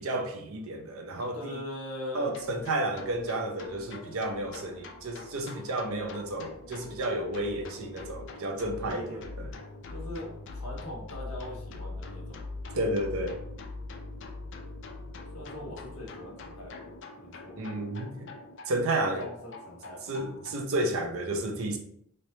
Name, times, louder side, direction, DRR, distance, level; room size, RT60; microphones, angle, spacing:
voice 1, 0.0-1.6 2.1-9.5 12.7-13.4 17.6-18.3 18.7-19.2 20.1-21.8, right 1 dB, 65° right, 0.6 m, -32 dB
voice 2, 1.2-2.4 8.8-9.2 9.9-12.4 15.3-16.8 17.2-17.6 19.0-20.1, left 1 dB, 80° left, 1.2 m, -40 dB
sound 1, 2.2-20.5, left 3 dB, 55° left, 0.4 m, -43 dB
3.2 x 3.1 x 2.7 m
head